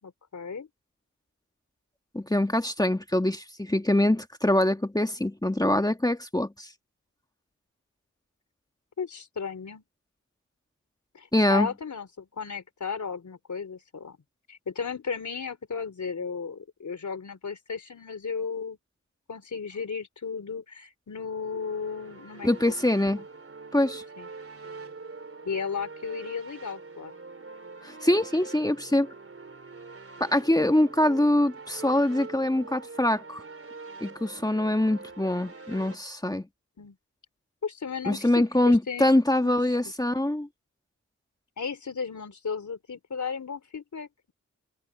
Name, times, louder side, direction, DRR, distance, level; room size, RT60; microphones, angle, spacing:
voice 1, 0.0-0.7 9.0-9.8 11.1-14.2 14.5-18.8 19.3-22.5 24.2-24.3 25.5-27.1 36.8-37.0 37.6-39.1 39.4-39.5 41.6-44.3, left 5 dB, 75° left, 4.1 m, -34 dB
voice 2, 2.1-6.7 11.3-11.7 22.4-23.2 23.7-24.0 27.8-29.1 30.2-33.4 34.0-36.5 38.0-40.5, left 1 dB, 15° left, 1.7 m, -24 dB
sound 1, 21.2-35.9, right 4 dB, 50° right, 3.3 m, -44 dB
cardioid pair, 50°, 30 cm